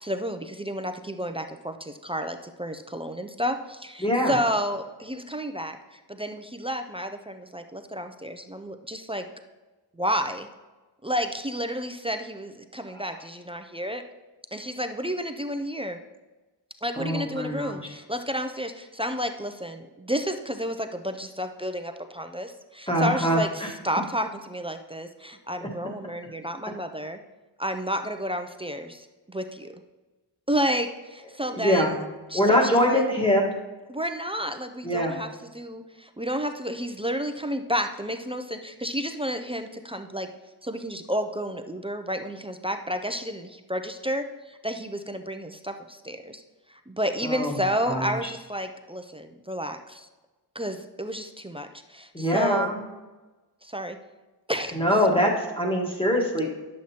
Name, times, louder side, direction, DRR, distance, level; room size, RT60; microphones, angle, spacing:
voice 1, 0.0-9.3 10.0-10.5 11.0-14.0 14.5-16.0 16.8-27.2 27.6-29.7 30.5-32.0 32.3-33.0 33.9-40.3 40.6-46.4 46.7-50.1 50.5-52.7 53.6-54.0 54.5-54.8, equal, 15° right, 6 dB, 0.4 m, -31 dB
voice 2, 4.0-4.3 12.9-13.0 17.0-17.8 22.9-23.7 25.6-25.7 31.5-31.9 32.3-33.4 34.8-35.2 47.2-48.1 52.1-52.8 54.7-56.5, equal, 10° left, -1 dB, 1.4 m, -23 dB
10.5 x 7.5 x 2.8 m, 1.2 s
wide cardioid pair, 135°, 42 cm